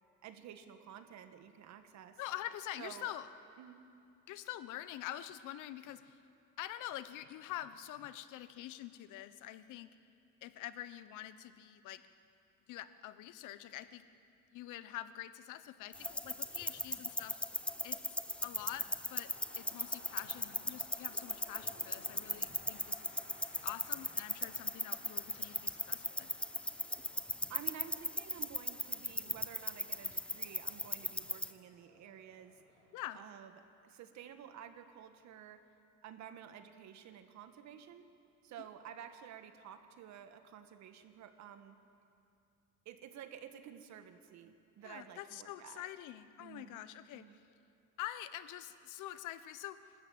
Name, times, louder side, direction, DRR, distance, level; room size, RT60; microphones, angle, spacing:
voice 1, 0.2-2.2 2.8-3.1 3.6-3.8 27.5-32.6 33.1-35.7 36.0-38.0 38.4-41.8 42.8-45.9 46.4-46.9 47.1-47.4, right 9 dB, 65° right, 9 dB, 1.6 m, -52 dB
voice 2, 2.2-3.3 4.3-6.2 6.6-9.9 10.4-12.0 12.7-14.0 14.5-17.4 17.8-18.0 18.4-23.1 23.6-26.3 32.9-33.2 44.8-47.4 48.0-49.8, left 13 dB, 80° left, 13 dB, 1.0 m, -46 dB
sound 1, 15.9-31.5, left 1 dB, 5° left, 0.7 m, -39 dB
sound 2, 19.0-33.0, left 2 dB, 60° left, 6.3 m, -61 dB
28.0 x 13.5 x 8.8 m, 2.6 s
cardioid pair, 125°, 30 cm